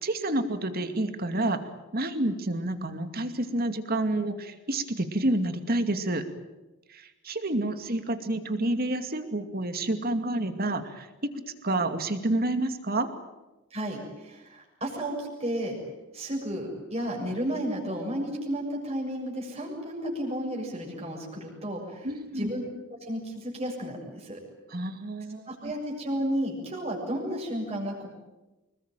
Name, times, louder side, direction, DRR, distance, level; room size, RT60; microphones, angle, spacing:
voice 1, 0.0-1.6 1.9-6.2 6.9-11.3 11.6-13.1 22.0-22.5 24.7-25.7, right 1 dB, 45° right, 8 dB, 2.5 m, -29 dB
voice 2, 13.7-15.8 16.1-22.1 22.4-22.6 23.0-24.4 25.5-28.1, equal, 30° right, -1 dB, 7.0 m, -32 dB
26.0 x 21.5 x 9.1 m, 1.1 s
head